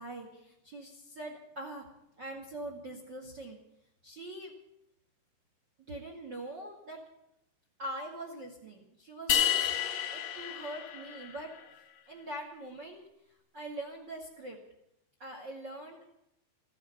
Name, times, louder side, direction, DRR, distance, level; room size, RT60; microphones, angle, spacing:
voice 1, 0.0-1.9 2.2-3.6 4.0-4.5 5.9-7.0 7.8-11.5 12.1-13.0 13.5-14.6 15.2-16.1, right 1 dB, 40° right, 4 dB, 1.7 m, -43 dB
sound 1, 9.3-11.6, left 10 dB, 60° left, 1.9 m, -30 dB
15.5 x 8.9 x 9.5 m, 0.81 s
omnidirectional pair, 5.2 m